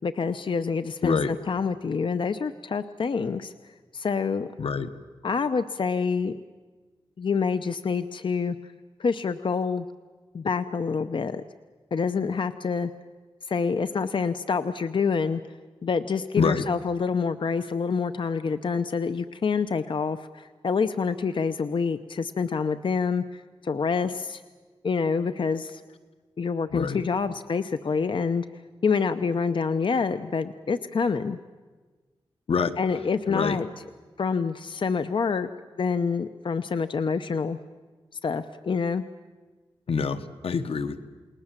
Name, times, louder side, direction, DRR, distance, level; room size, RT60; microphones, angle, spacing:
voice 1, 0.0-3.5 3.9-4.5 5.2-6.3 7.2-8.6 9.0-9.9 10.3-11.4 11.9-12.9 13.5-15.4 15.8-24.4 24.8-25.8 26.4-28.4 28.8-31.4 32.8-33.7 34.2-35.5 35.8-37.6 38.2-39.0, left 5 dB, 60° left, 11 dB, 0.7 m, -27 dB
voice 2, 4.6-4.9 16.4-16.6 26.7-27.0 32.5-32.7 33.3-33.6 39.9-41.0, left 5 dB, 85° left, 10 dB, 1.2 m, -26 dB
29.0 x 20.0 x 7.4 m, 1.4 s
wide cardioid pair, 85°, 10 cm